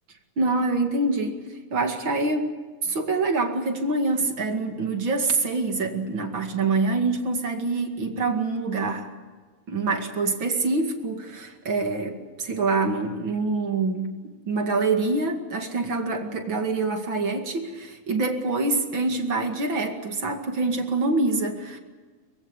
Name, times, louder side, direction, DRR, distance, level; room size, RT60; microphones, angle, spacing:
voice 1, 0.4-1.4 1.7-2.5 2.8-9.1 9.7-14.1 14.5-21.8, right 3 dB, 40° right, 5 dB, 2.6 m, -25 dB
23.5 x 22.0 x 7.3 m, 1.4 s
omnidirectional pair, 3.8 m